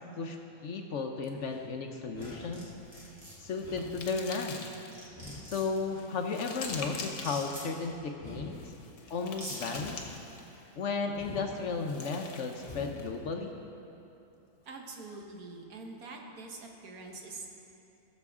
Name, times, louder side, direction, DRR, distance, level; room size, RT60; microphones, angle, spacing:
voice 1, 0.6-2.7 3.4-4.7 5.4-8.6 9.1-10.2 10.8-13.5, left 4 dB, 60° left, 4 dB, 0.9 m, -34 dB
sound 1, 1.2-1.7 2.1-3.2 3.6-4.7 5.1-6.2 6.6-7.7 8.1-9.2 9.6-10.7 11.1-12.1 12.5-13.2, left 2 dB, 25° left, 1.2 m, -48 dB
sound 2, 2.2-2.6 2.9-3.3 4.5-4.6 4.9-5.8 7.1-7.6 8.7-8.8 9.3-9.6, right 1 dB, 60° right, 2.2 m, -43 dB
sound 3, 2.8-5.1 5.6-7.6 8.5-10.6 11.6-13.1, left 4 dB, 80° left, 1.5 m, -45 dB
voice 2, 14.6-17.5, right 3 dB, 75° right, 1 dB, 1.6 m, -45 dB
18.5 x 7.0 x 3.6 m, 2.9 s
omnidirectional pair, 1.6 m